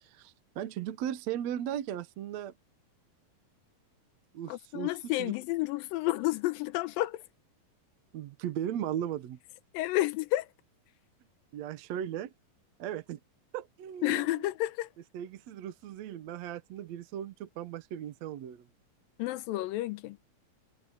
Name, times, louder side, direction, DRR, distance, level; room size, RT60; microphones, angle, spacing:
voice 1, 0.0-2.5 4.3-5.4 8.1-9.4 11.5-12.3 12.8-13.2 13.5-14.5 15.1-18.7, right 10 dB, 65° right, 1.9 m, -37 dB
voice 2, 4.5-7.2 9.7-10.5 14.0-14.9 19.2-20.2, left 17 dB, 85° left, 2.4 m, -30 dB
omnidirectional pair, 4.1 m